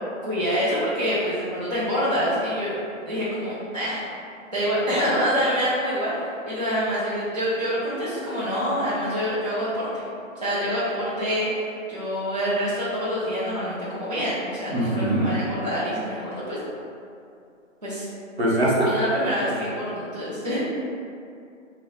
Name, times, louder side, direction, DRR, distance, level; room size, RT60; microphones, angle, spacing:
voice 1, 0.2-2.8 3.0-4.0 4.5-9.9 10.4-16.6 17.8-18.1 18.8-20.6, equal, 35° right, -11 dB, 0.4 m, -26 dB
voice 2, 14.7-15.3 18.4-19.0, right 1 dB, 55° right, -4 dB, 0.8 m, -22 dB
2.7 x 2.0 x 3.9 m, 2.5 s
hypercardioid pair, 165°, 39 cm